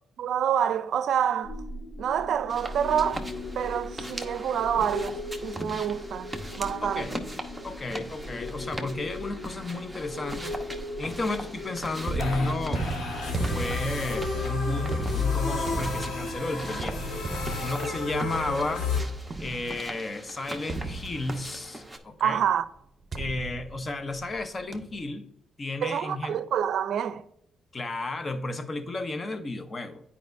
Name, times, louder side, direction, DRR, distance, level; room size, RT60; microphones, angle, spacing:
voice 1, 0.2-1.6 2.0-3.3 3.6-7.2 22.2-22.7 25.8-27.2, right 9 dB, 65° right, 0.4 m, -27 dB
sound 1, 1.4-19.0, left 3 dB, 70° left, 1.5 m, -34 dB
sound 2, 2.5-22.0, right 1 dB, ahead, 0.9 m, -41 dB
voice 2, 6.8-7.1 7.6-10.6 11.0-12.9 13.3-17.2 17.6-18.8 19.4-22.4 23.2-25.3 25.6-26.4 27.7-30.0, left 2 dB, 30° left, 0.8 m, -33 dB
sound 3, 12.0-20.0 20.7-21.7 23.1-24.4 24.7-25.1, right 3 dB, 35° right, 0.7 m, -36 dB
9.3 x 4.8 x 2.6 m
cardioid pair, 90°, 0 cm